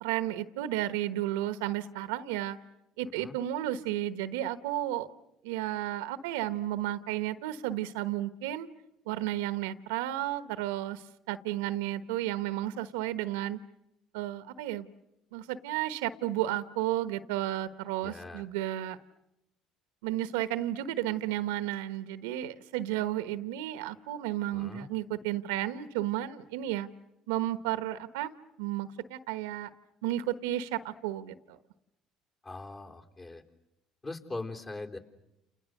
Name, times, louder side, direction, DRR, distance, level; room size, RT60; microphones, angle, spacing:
voice 1, 0.0-2.6 3.0-5.1 5.4-8.7 9.1-13.6 14.1-14.9 15.3-19.0 20.0-26.9 27.3-29.7 30.0-31.6, right 13 dB, 85° right, 13 dB, 1.1 m, -33 dB
voice 2, 18.0-18.5 24.5-24.9 32.4-33.4 34.0-35.0, left 2 dB, 30° left, 2 dB, 3.7 m, -41 dB
29.5 x 29.0 x 6.6 m, 0.88 s
hypercardioid pair, 75°, 0 cm